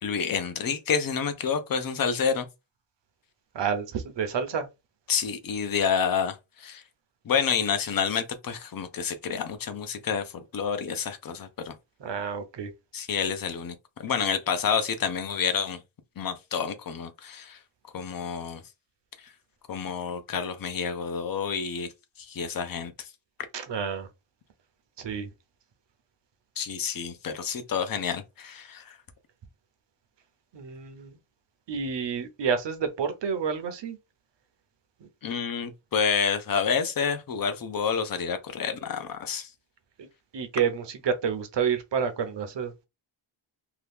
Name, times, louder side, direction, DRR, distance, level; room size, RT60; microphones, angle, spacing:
voice 1, 0.0-2.5 5.1-6.8 7.3-11.7 12.9-13.7 14.0-15.8 16.2-17.6 17.9-18.6 19.7-21.9 22.3-22.9 26.6-29.0 35.2-39.5, left 6 dB, 45° left, 0.6 m, -29 dB
voice 2, 3.5-4.7 12.0-12.7 23.5-24.1 25.0-25.3 30.5-31.2 31.7-34.0 35.0-35.1 40.0-40.1 40.3-42.9, right 6 dB, 60° right, 0.7 m, -29 dB
2.9 x 2.3 x 3.4 m
wide cardioid pair, 160°, 48 cm